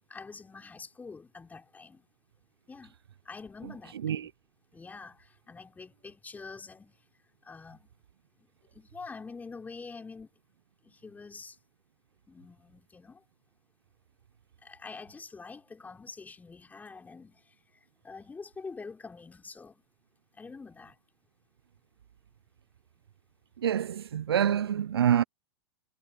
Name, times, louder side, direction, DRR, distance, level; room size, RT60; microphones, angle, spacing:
voice 1, 0.1-2.1 2.7-3.0 3.3-4.3 4.7-6.9 7.4-7.9 8.4-10.3 10.8-11.6 12.3-13.2 14.6-17.4 18.0-19.8 20.3-21.0, left 4 dB, 10° left, 5.2 m, -46 dB
voice 2, 23.6-25.2, right 9 dB, 70° right, 0.8 m, -26 dB
figure-of-eight pair, 100°, 13 cm